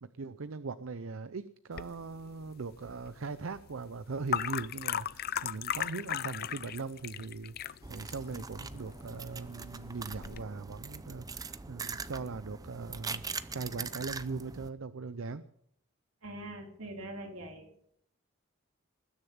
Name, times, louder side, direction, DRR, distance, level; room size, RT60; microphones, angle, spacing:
voice 1, 0.0-13.2 13.5-15.4, right 4 dB, 70° right, 14 dB, 0.6 m, -40 dB
Water Being Poured into Glass, 1.7-10.4, left 9 dB, 45° left, 0.5 m, -38 dB
sound 1, 7.8-14.7, right 4 dB, 15° right, 0.6 m, -42 dB
voice 2, 16.2-17.7, right 1 dB, 85° right, 3 dB, 3.0 m, -43 dB
20.0 x 6.7 x 8.7 m, 0.71 s
head